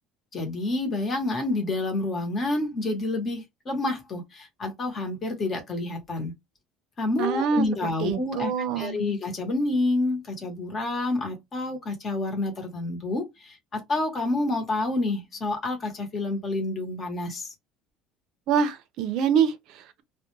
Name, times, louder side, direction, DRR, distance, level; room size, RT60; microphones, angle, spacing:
voice 1, 0.3-6.3 7.0-8.5 8.8-17.5, left 2 dB, 30° left, 0.9 m, -28 dB
voice 2, 7.2-7.7 8.0-9.0 18.5-20.0, right 7 dB, 60° right, 0.5 m, -25 dB
2.3 x 2.1 x 3.0 m
cardioid pair, 140°, 0 cm